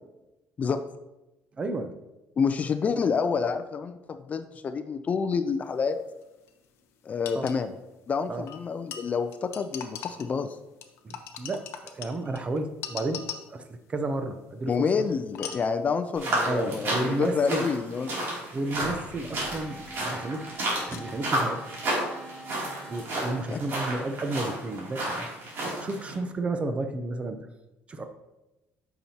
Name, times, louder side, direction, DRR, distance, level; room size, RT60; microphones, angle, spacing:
voice 1, 1.6-1.9 7.3-7.5 8.3-8.5 11.0-13.2 13.5-14.9 16.5-17.7 18.5-20.4 20.9-21.8 22.9-25.3 25.7-27.4 27.9-28.0, right 2 dB, 25° right, 8 dB, 0.6 m, -32 dB
voice 2, 2.4-6.0 7.0-7.7 8.1-10.6 14.7-18.3 23.5-23.6, left 5 dB, 30° left, 9 dB, 0.4 m, -28 dB
sound 1, 6.2-6.3 6.5-6.6 7.3-7.6 8.5-10.5 10.8-13.7 15.3-15.8 17.3-17.4 18.7-20.0 20.3-21.2, left 8 dB, 65° left, 0.7 m, -40 dB
sound 2, 16.1-26.1, right 1 dB, 50° right, 2.7 m, -32 dB
sound 3, 19.3-24.4, right 1 dB, 5° left, 0.8 m, -46 dB
8.6 x 5.9 x 2.8 m, 0.99 s
cardioid pair, 135°, 5 cm